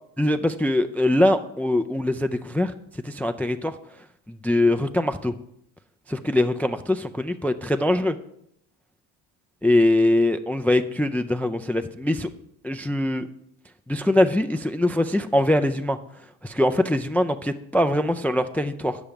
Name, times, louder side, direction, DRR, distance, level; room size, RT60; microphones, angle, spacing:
voice 1, 0.2-2.7 3.0-3.7 4.3-5.3 6.1-8.2 9.6-12.3 12.6-13.3 13.9-16.0 16.4-19.0, left 1 dB, 5° left, 10 dB, 0.4 m, -22 dB
8.9 x 7.2 x 5.1 m, 0.76 s
supercardioid pair, 70°, 49 cm